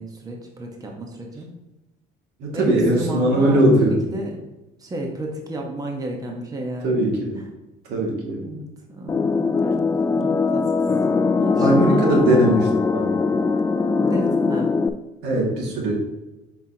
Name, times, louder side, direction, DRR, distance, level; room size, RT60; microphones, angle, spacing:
voice 1, 0.0-1.5 2.5-4.4 4.8-7.1 7.3-7.5 8.4-9.7 10.1-10.7 11.4-12.5 14.0-14.7, right 1 dB, 20° right, 1 dB, 1.2 m, -32 dB
voice 2, 2.4-3.9 6.8-7.4 7.9-8.4 11.6-13.1 15.2-15.9, right 1 dB, 75° right, -1 dB, 2.1 m, -20 dB
sound 1, 9.1-14.9, left 4 dB, 15° left, 0.3 m, -21 dB
7.2 x 5.7 x 2.9 m, 1.0 s
cardioid pair, 105°, 17 cm